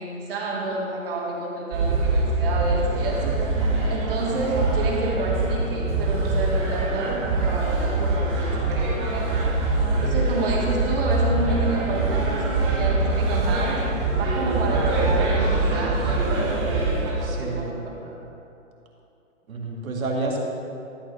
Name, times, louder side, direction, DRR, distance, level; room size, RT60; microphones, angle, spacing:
voice 1, 0.0-3.4 3.9-9.4 9.9-13.9 14.2-18.2, right 2 dB, 45° right, -2 dB, 2.0 m, -30 dB
sound 1, 1.7-17.1, right 2 dB, 20° right, 1.5 m, -23 dB
voice 2, 17.2-17.8 19.5-20.4, right 2 dB, 85° right, -1 dB, 2.2 m, -29 dB
12.5 x 4.6 x 6.8 m, 2.8 s
hypercardioid pair, 165°, 40 cm